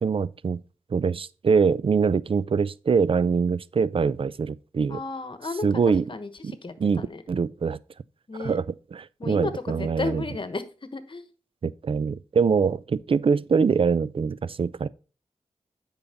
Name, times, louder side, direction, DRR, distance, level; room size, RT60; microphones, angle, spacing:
voice 1, 0.0-0.6 0.9-5.0 5.6-6.0 6.4-6.5 6.8-7.8 8.4-8.6 8.9-10.2 11.6-14.9, right 5 dB, 50° right, 0.4 m, -24 dB
voice 2, 4.9-5.7 6.1-7.2 8.3-8.6 9.2-10.7 10.9-11.3, left 3 dB, 50° left, 1.1 m, -33 dB
8.5 x 5.6 x 4.3 m
cardioid pair, 55°, 11 cm